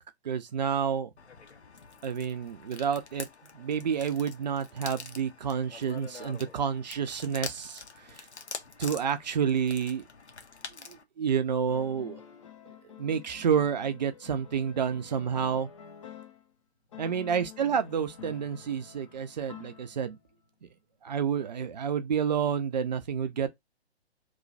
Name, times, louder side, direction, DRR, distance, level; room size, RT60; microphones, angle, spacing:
voice 1, 0.2-1.1 2.0-3.3 3.5-8.2 8.8-10.0 10.9-12.2 13.0-15.7 17.0-20.2 20.6-20.7 21.0-23.5, right 7 dB, 40° right, 0.5 m, -29 dB
sound 1, 1.2-11.0, left 4 dB, 80° left, 0.8 m, -45 dB
sound 2, 11.7-16.5 16.9-20.3, left 7 dB, 30° left, 0.5 m, -49 dB
3.0 x 2.3 x 3.9 m
figure-of-eight pair, 130°, 33 cm